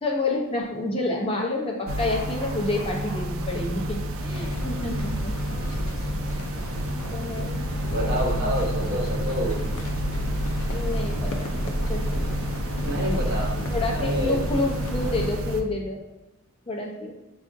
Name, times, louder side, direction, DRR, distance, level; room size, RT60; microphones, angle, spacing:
voice 1, 0.0-5.6 7.1-8.1 10.7-11.5 11.9-12.3 13.7-16.0 16.7-17.1, left 2 dB, 25° left, -1 dB, 0.6 m, -29 dB
sound 1, 1.7-5.1 5.4-5.5, right 1 dB, 25° right, 1.1 m, -43 dB
sound 2, 1.9-15.6, right 1 dB, 85° right, 0.4 m, -30 dB
sound 3, 4.3-15.3, left 1 dB, 85° left, 0.4 m, -32 dB
voice 2, 7.9-9.6 12.8-13.6 13.8-14.4, equal, 55° right, -3 dB, 0.9 m, -28 dB
4.9 x 2.4 x 2.5 m, 1.0 s
head